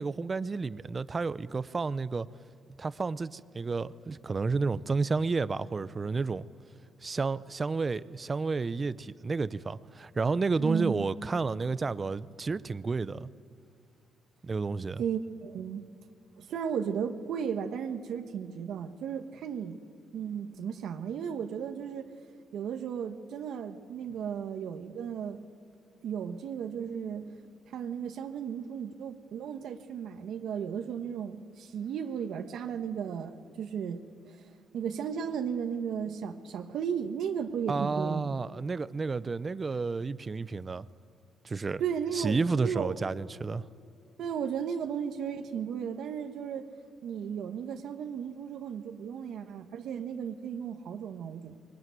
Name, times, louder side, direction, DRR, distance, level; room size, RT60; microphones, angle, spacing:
voice 1, 0.0-2.3 2.8-6.4 7.0-13.3 14.4-15.0 37.7-40.8 41.4-41.8 42.1-43.7, right 4 dB, 30° right, 0.6 m, -31 dB
voice 2, 10.6-11.0 15.0-15.9 16.4-19.8 20.1-22.1 22.5-25.4 26.0-27.3 27.7-34.4 34.7-38.3 41.8-42.9 44.2-46.7 47.0-51.6, right 7 dB, 75° right, 1.3 m, -35 dB
22.0 x 19.5 x 9.4 m
cardioid pair, 90°, 0 cm